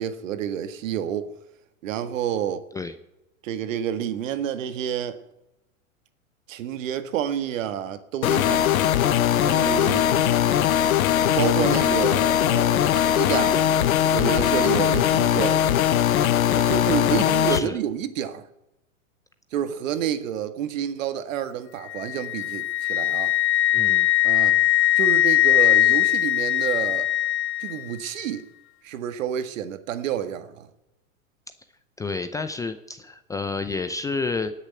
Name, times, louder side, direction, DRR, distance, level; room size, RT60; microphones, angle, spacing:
voice 1, 0.0-1.3 1.8-2.6 3.4-5.2 6.5-8.7 9.4-10.1 11.4-13.7 14.1-15.6 16.5-18.5 19.5-23.3 24.2-24.6 25.0-27.1 27.6-28.5 28.8-30.7, right 9 dB, 65° right, 1.7 m, -29 dB
sound 1, 8.2-17.6, left 10 dB, 80° left, 1.1 m, -20 dB
voice 2, 17.5-17.8 23.7-24.1 32.0-34.5, left 4 dB, 10° left, 0.5 m, -30 dB
Wind instrument woodwind instrument, 21.9-27.8, left 14 dB, 30° left, 0.8 m, -21 dB
18.0 x 6.8 x 8.9 m
hypercardioid pair, 125°, 41 cm